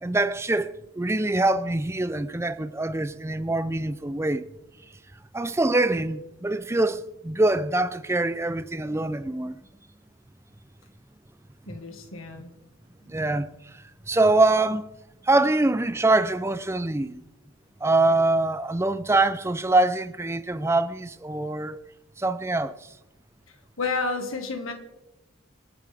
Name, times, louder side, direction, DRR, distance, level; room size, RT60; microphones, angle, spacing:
voice 1, 0.0-4.5 5.3-9.6 13.1-13.8 14.1-14.9 15.2-17.2 17.8-21.8 22.2-22.9, right 2 dB, 15° right, 0.5 m, -24 dB
voice 2, 11.7-12.5 13.0-13.2 23.5-24.7, left 4 dB, 85° left, 1.8 m, -31 dB
27.0 x 9.8 x 3.5 m
head